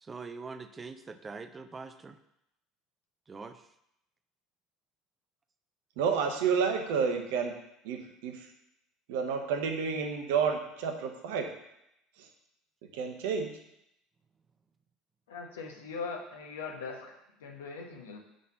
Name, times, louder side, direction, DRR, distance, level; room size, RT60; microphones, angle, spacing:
voice 1, 0.0-2.2 3.3-3.6, right 4 dB, 25° right, 10 dB, 0.4 m, -43 dB
voice 2, 6.0-7.5 7.8-8.4 9.1-11.5 12.9-13.5, right 6 dB, 60° right, 4 dB, 0.8 m, -30 dB
voice 3, 15.3-18.2, left 4 dB, 70° left, 1 dB, 1.0 m, -41 dB
5.1 x 3.9 x 5.3 m, 0.81 s
figure-of-eight pair, 65°, 0 cm